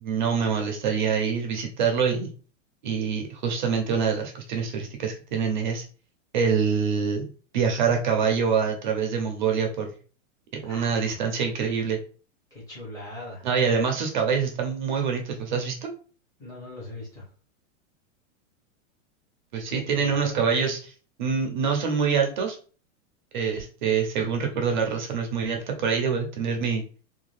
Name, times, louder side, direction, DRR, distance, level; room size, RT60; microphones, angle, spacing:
voice 1, 0.0-2.3 2.8-5.8 6.3-7.3 7.5-9.9 10.5-12.0 13.4-15.9 19.5-20.9 21.2-22.6 23.3-26.8, right 6 dB, 40° right, 3 dB, 0.5 m, -25 dB
voice 2, 10.7-11.2 12.5-13.5 16.4-17.2 19.7-20.4, left 1 dB, 10° left, -6 dB, 0.7 m, -40 dB
2.6 x 2.2 x 3.1 m, 0.38 s
supercardioid pair, 175°, 38 cm